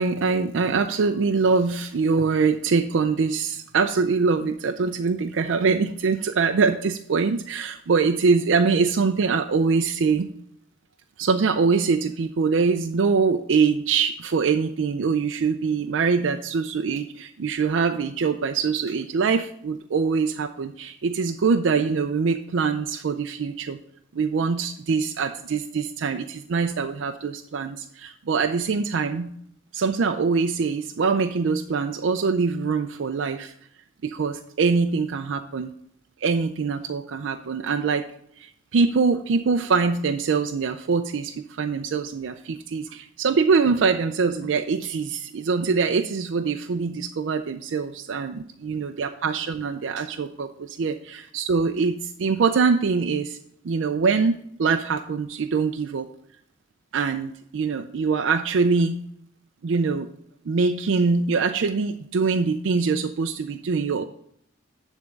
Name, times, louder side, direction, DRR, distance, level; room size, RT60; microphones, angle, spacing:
voice 1, 0.0-10.3 11.2-23.8 24.1-29.3 29.7-33.5 34.0-35.7 36.2-38.1 38.4-53.4 53.6-56.1 56.9-59.0 59.6-60.1 60.5-64.0, right 5 dB, 80° right, 7 dB, 0.4 m, -23 dB
10.5 x 3.6 x 6.4 m, 0.70 s
head